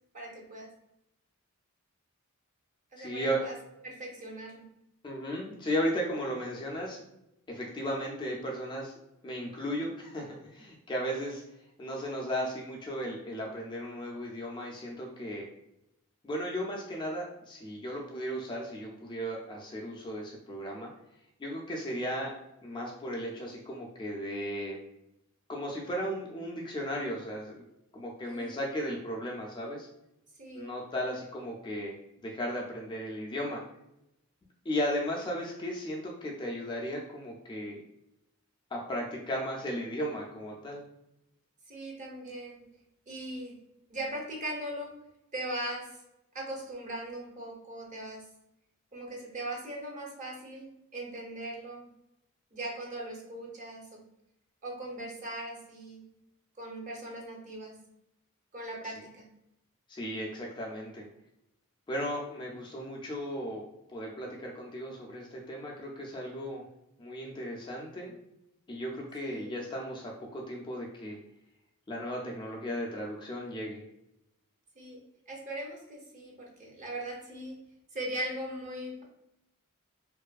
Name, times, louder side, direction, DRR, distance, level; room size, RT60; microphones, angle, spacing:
voice 1, 0.1-0.7 2.9-3.6 3.8-4.6 28.2-28.6 30.4-30.8 41.7-42.7 43.1-43.6 43.9-45.0 45.3-45.9 46.3-48.3 48.9-51.9 52.5-54.0 54.6-56.0 56.6-57.8 58.5-59.3 69.2-69.5 74.8-75.0 75.3-77.6 77.9-79.0, right 1 dB, 35° right, -1 dB, 0.6 m, -39 dB
voice 2, 3.0-3.4 5.0-7.0 7.5-8.9 9.2-11.4 11.8-15.4 16.2-20.9 21.4-22.3 22.6-24.8 25.5-27.6 27.9-29.9 30.6-31.9 32.2-33.6 34.7-37.8 38.7-40.8 58.8-58.9 59.9-61.1 61.9-63.6 63.9-66.6 67.0-68.2 68.7-71.2 71.9-73.8, equal, 20° left, -2 dB, 0.3 m, -35 dB
2.6 x 2.3 x 2.2 m, 0.84 s
head